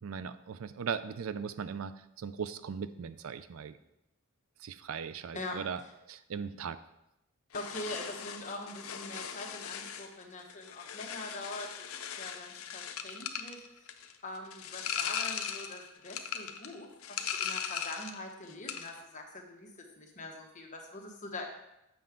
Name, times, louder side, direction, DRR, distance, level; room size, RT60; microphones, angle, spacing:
voice 1, 0.0-3.8 4.6-6.8, right 6 dB, 70° right, 13 dB, 0.4 m, -39 dB
sound 1, 7.5-18.2 18.5-19.0, left 8 dB, 80° left, 0.6 m, -39 dB
voice 2, 7.5-11.8 12.2-13.6 14.2-21.5, left 2 dB, 35° left, 1 dB, 1.2 m, -43 dB
7.6 x 5.7 x 3.7 m, 0.85 s
head